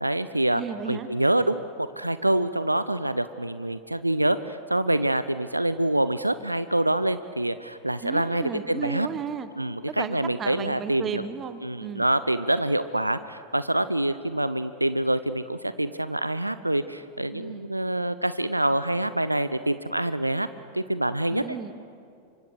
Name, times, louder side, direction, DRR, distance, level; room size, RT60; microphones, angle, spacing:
voice 1, 0.0-0.6 0.9-9.1 9.6-11.2 11.6-20.5 20.7-21.4, right 1 dB, 85° right, 14 dB, 0.6 m, -26 dB
voice 2, 0.5-1.1 8.0-9.5 10.0-12.1 17.3-17.7 21.3-21.7, right 7 dB, 25° right, 12 dB, 1.3 m, -34 dB
26.0 x 24.5 x 6.6 m, 2.4 s
figure-of-eight pair, 90°, 0 cm